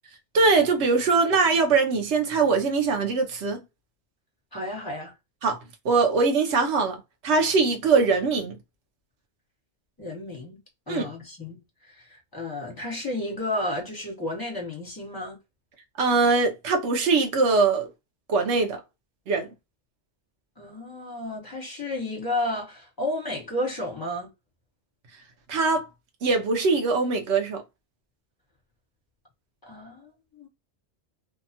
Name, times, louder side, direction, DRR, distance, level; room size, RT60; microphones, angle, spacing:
voice 1, 0.3-3.6 5.4-5.6 5.8-8.6 10.9-11.1 16.0-17.9 18.3-18.8 19.3-19.5 25.5-25.9 26.2-27.6, right 4 dB, 75° right, 1.1 m, -22 dB
voice 2, 4.5-5.1 10.0-10.6 10.9-15.4 20.6-24.3 29.6-30.5, left 1 dB, 20° left, 1.3 m, -32 dB
2.8 x 2.3 x 2.7 m
omnidirectional pair, 1.2 m